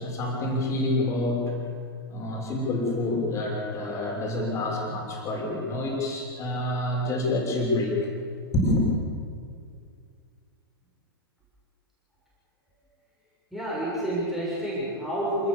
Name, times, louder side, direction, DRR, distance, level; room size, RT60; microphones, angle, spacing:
voice 1, 0.0-1.6 2.1-8.0 8.5-8.8, left 1 dB, 25° left, -1 dB, 6.3 m, -27 dB
voice 2, 13.5-15.5, right 1 dB, ahead, -8 dB, 7.4 m, -29 dB
27.5 x 19.5 x 7.0 m, 2.3 s
figure-of-eight pair, 105°, 13 cm